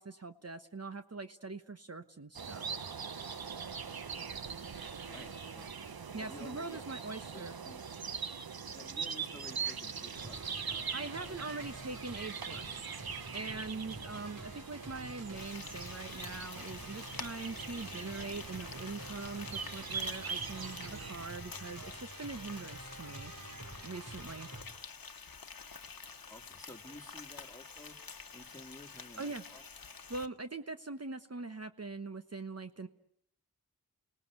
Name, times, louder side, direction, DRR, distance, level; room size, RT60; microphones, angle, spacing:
voice 1, 0.0-2.7 6.1-7.6 10.9-23.3 23.8-24.5 29.2-29.4 30.1-32.9, right 3 dB, 45° right, 8 dB, 1.1 m, -43 dB
sound 1, 2.4-21.3, right 6 dB, 80° right, 1.0 m, -42 dB
voice 2, 5.0-5.8 6.2-7.0 7.3-7.8 8.7-10.9 11.2-11.4 26.3-28.0 28.3-29.6, left 1 dB, 10° left, 2 dB, 2.1 m, -53 dB
sound 2, 10.1-24.6, right 2 dB, 60° right, 6.2 m, -49 dB
Frying (food), 15.4-30.3, left 5 dB, 70° left, 1.2 m, -48 dB
29.5 x 18.5 x 8.2 m, 0.70 s
wide cardioid pair, 60°, 36 cm